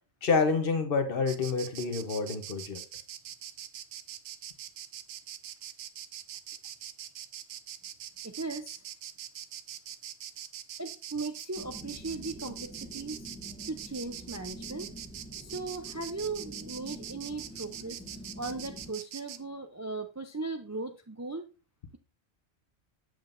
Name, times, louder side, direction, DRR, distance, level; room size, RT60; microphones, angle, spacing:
voice 1, 0.2-2.8, left 4 dB, 55° left, 7 dB, 1.1 m, -28 dB
Insect, 1.3-19.4, right 10 dB, 70° right, 0.8 m, -43 dB
voice 2, 8.2-8.8 10.8-13.3 13.7-14.9 15.4-18.0 18.4-21.4, right 3 dB, 25° right, 6 dB, 0.3 m, -38 dB
sound 1, 11.6-18.9, equal, 5° left, 1.1 m, -47 dB
7.6 x 7.2 x 2.5 m, 0.32 s
omnidirectional pair, 1.1 m